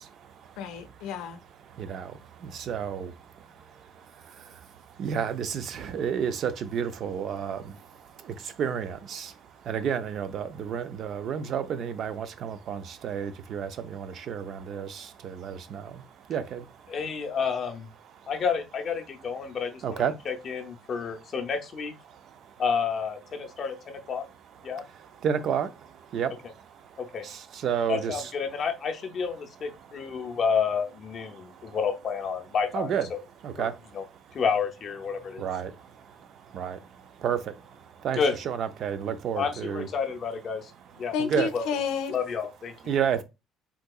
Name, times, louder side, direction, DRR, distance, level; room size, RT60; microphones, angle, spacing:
voice 1, 0.6-1.4 41.1-42.1, left 6 dB, 90° left, 0.5 m, -30 dB
voice 2, 2.7-3.1 5.0-7.6 8.6-9.3 9.7-15.8 16.3-16.6 19.8-20.1 25.2-25.7 26.1-26.3 27.6-28.3 32.7-33.1 33.4-33.7 35.4-35.7 36.5-36.8 37.2-37.4 38.0-39.9 41.2-41.5 42.9-43.2, right 8 dB, 45° right, 0.3 m, -30 dB
voice 3, 16.9-17.9 18.3-21.9 22.6-24.3 24.6-24.8 27.0-27.2 27.9-33.2 33.6-33.7 33.9-34.0 34.3-35.4 38.2-38.3 39.4-40.7 41.0-41.1 41.5-41.6 42.1-42.7, left 6 dB, 35° left, 0.5 m, -30 dB
3.6 x 2.7 x 2.3 m
cardioid pair, 170°, 0 cm